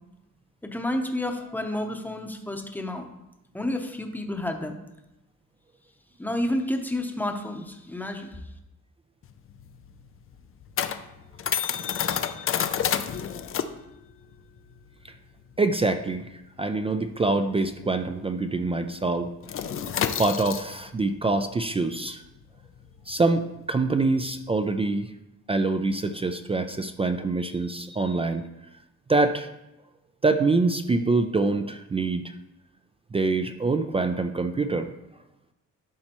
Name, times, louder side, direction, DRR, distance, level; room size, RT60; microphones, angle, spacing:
voice 1, 0.6-3.1 3.5-4.8 6.2-8.4, left 1 dB, 5° left, 5 dB, 0.8 m, -30 dB
sound 1, 9.2-18.2 18.5-18.7 19.0-24.8, left 8 dB, 45° left, 0.4 m, -31 dB
voice 2, 15.6-19.3 20.2-22.2 23.1-25.1 25.5-28.5 29.1-29.5 30.2-32.3 33.1-34.9, right 3 dB, 20° right, 8 dB, 0.3 m, -25 dB
12.0 x 4.3 x 2.9 m, 0.93 s
cardioid pair, 100°, 31 cm